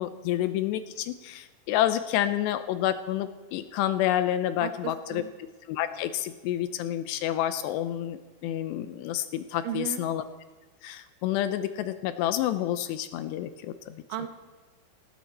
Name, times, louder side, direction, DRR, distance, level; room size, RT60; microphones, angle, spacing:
voice 1, 0.0-5.2 5.7-10.2 10.8-14.0, left 12 dB, 80° left, 11 dB, 2.5 m, -29 dB
voice 2, 4.6-5.3 9.6-10.0 14.1-14.3, right 10 dB, 80° right, 7 dB, 3.8 m, -35 dB
18.0 x 16.5 x 4.2 m, 1.3 s
omnidirectional pair, 5.6 m